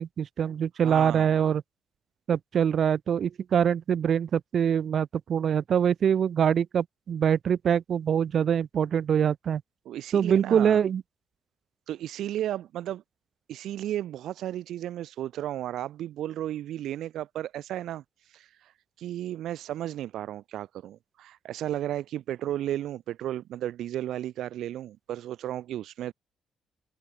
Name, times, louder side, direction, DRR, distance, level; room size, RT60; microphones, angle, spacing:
voice 1, 0.0-1.6 2.3-9.6 10.1-11.0, right 8 dB, 45° right, 1.2 m, -24 dB
voice 2, 0.8-1.4 9.9-10.8 11.9-13.0 13.5-26.1, right 12 dB, 75° right, 0.6 m, -34 dB
cardioid pair, 145°, 0 cm